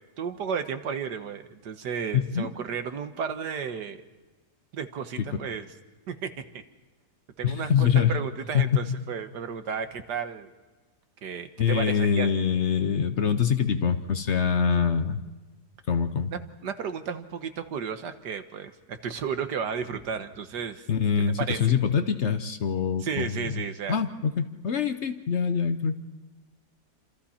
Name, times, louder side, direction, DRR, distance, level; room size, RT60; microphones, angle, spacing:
voice 1, 0.2-4.0 4.7-5.7 6.1-6.3 7.4-10.5 11.2-12.3 16.3-20.8 21.2-21.7 23.0-24.0, right 6 dB, 90° right, 8 dB, 1.8 m, -33 dB
voice 2, 2.1-2.5 5.2-5.3 7.4-8.2 8.5-8.9 11.6-15.2 15.9-16.3 20.9-23.6 23.9-26.0, left 7 dB, 50° left, 9 dB, 1.0 m, -24 dB
28.5 x 26.5 x 4.4 m, 1.2 s
omnidirectional pair, 1.8 m